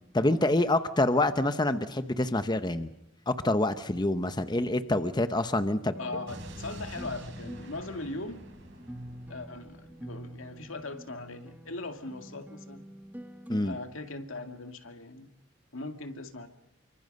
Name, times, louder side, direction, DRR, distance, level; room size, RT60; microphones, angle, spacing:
voice 1, 0.1-2.9 3.3-6.0 13.5-13.7, left 2 dB, 20° left, 0.9 m, -26 dB
sound 1, 5.9-13.9, equal, 10° right, 1.3 m, -46 dB
voice 2, 6.0-8.4 9.3-12.9 13.6-15.3 15.7-16.5, left 2 dB, 80° left, 2.2 m, -39 dB
Explosion, 6.3-10.3, right 1 dB, 60° right, 5.8 m, -47 dB
28.5 x 25.0 x 5.4 m
head